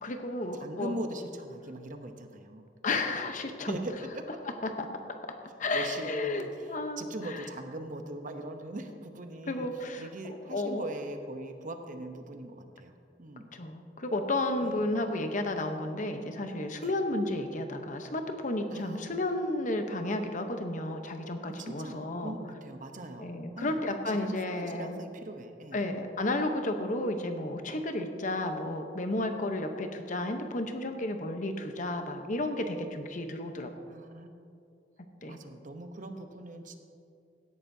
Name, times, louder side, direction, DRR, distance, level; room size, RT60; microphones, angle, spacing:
voice 1, 0.0-0.9 2.8-3.8 4.6-4.9 5.6-7.1 9.5-10.0 10.5-10.8 13.5-22.3 23.2-25.0 25.7-33.7 35.2-35.4, left 2 dB, 45° left, 6 dB, 0.9 m, -32 dB
voice 2, 0.6-2.7 3.7-4.2 5.7-13.5 14.6-15.0 16.8-16.9 18.7-19.1 21.5-23.8 24.1-25.9 29.2-29.4 33.9-34.4 35.3-36.8, right 1 dB, 45° right, 6 dB, 0.8 m, -41 dB
16.5 x 11.5 x 2.7 m, 2.5 s
head